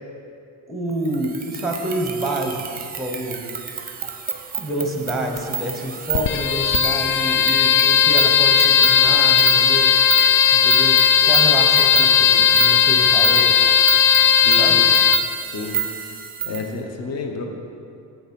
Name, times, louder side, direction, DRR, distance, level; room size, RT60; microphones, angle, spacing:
voice 1, 0.7-3.4 4.6-9.9 10.5-13.6 14.6-14.8, right 1 dB, ahead, 2 dB, 0.9 m, -28 dB
sound 1, 1.0-16.7, right 8 dB, 25° right, 0.6 m, -29 dB
sound 2, 6.1-15.2, left 8 dB, 60° left, 0.5 m, -16 dB
voice 2, 14.4-14.7 15.5-15.8 16.4-17.4, left 4 dB, 45° left, 3 dB, 0.9 m, -30 dB
7.7 x 7.1 x 5.3 m, 2.5 s
cardioid pair, 150°, 36 cm